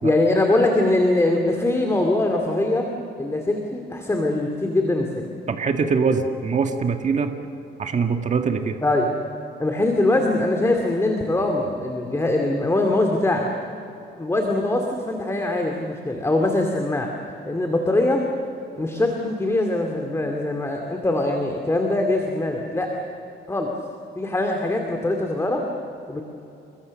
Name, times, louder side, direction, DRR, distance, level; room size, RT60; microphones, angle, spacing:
voice 1, 0.0-2.9 3.2-5.2 8.8-9.1 9.6-13.5 14.2-17.1 17.5-18.2 18.8-22.9 23.5-23.7 24.2-25.6 26.1-26.2, left 2 dB, 15° left, 2 dB, 2.5 m, -22 dB
voice 2, 5.5-7.3 7.8-8.8, right 5 dB, 40° right, 4 dB, 1.8 m, -23 dB
29.0 x 23.0 x 6.6 m, 2.8 s
cardioid pair, 115°, 19 cm